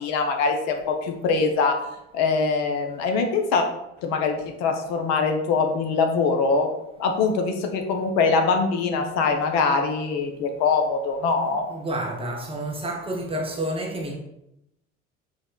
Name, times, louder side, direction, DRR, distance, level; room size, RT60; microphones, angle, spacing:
voice 1, 0.0-1.8 2.1-3.7 4.0-6.7 7.0-11.7, left 4 dB, 50° left, 0.5 m, -23 dB
voice 2, 11.7-14.2, right 1 dB, 15° right, 0.5 m, -29 dB
4.8 x 2.1 x 2.2 m
figure-of-eight pair, 60°, 35 cm